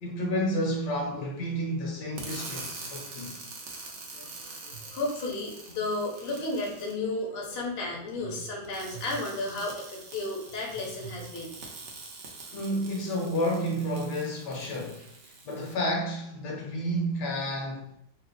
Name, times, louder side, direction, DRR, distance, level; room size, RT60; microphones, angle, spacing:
voice 1, 0.0-3.4 12.5-15.1 15.4-17.9, equal, 70° left, 1.4 m, -30 dB
sound 1, 2.2-6.9 8.6-15.7, right 3 dB, 65° right, 0.7 m, -44 dB
voice 2, 3.8-11.5, left 2 dB, 50° left, 0.7 m, -33 dB
3.2 x 2.1 x 3.8 m
omnidirectional pair, 2.0 m